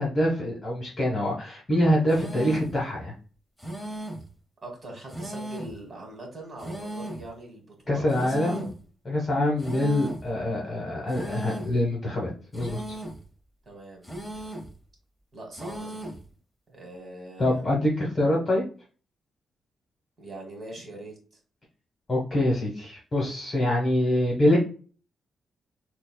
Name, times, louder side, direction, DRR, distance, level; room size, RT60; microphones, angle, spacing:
voice 1, 0.0-3.1 7.9-8.7 9.0-13.0 17.4-18.6 22.1-24.6, left 1 dB, 25° left, -3 dB, 1.0 m, -25 dB
sound 1, 2.1-2.8 3.6-4.3 5.1-5.8 6.6-7.3 8.1-8.8 9.6-10.3 11.1-11.8 12.5-13.3 14.0-14.8 15.5-16.3, right 1 dB, ahead, 0.7 m, -37 dB
voice 2, 4.6-8.7 13.6-14.1 15.3-16.1 16.7-17.7 20.2-21.1, right 1 dB, 35° right, 1 dB, 1.7 m, -42 dB
6.5 x 2.3 x 2.2 m, 0.38 s
wide cardioid pair, 150°, 0 cm